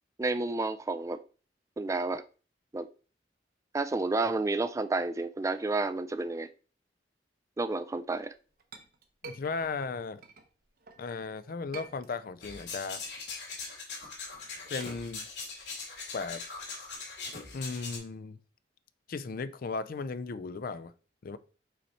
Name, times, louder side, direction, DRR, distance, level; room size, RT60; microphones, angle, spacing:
voice 1, 0.2-1.2 1.8-2.2 2.7-2.9 3.7-6.5 7.6-8.3, right 3 dB, 15° right, 0.3 m, -30 dB
Chink clink, 8.2-11.0 11.5-12.5 12.9-17.0, right 4 dB, 55° right, 0.9 m, -51 dB
voice 2, 9.2-10.2 11.0-13.0 14.7-15.3 16.1-16.4 17.5-18.4 19.1-20.9 21.2-21.4, left 4 dB, 55° left, 0.4 m, -36 dB
sound 1, 12.4-18.0, left 4 dB, 70° left, 2.5 m, -41 dB
5.7 x 4.1 x 4.4 m
head